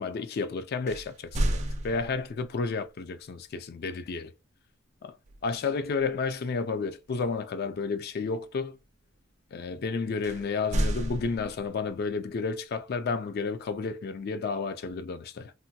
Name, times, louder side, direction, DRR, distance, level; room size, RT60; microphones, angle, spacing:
voice 1, 0.0-4.3 5.0-5.2 5.4-8.8 9.5-15.5, left 4 dB, 50° left, 0.4 m, -31 dB
sound 1, 0.9-2.5 5.3-5.6 6.0-6.2 10.2-11.9, right 1 dB, 35° right, 0.4 m, -31 dB
3.4 x 2.2 x 2.7 m
head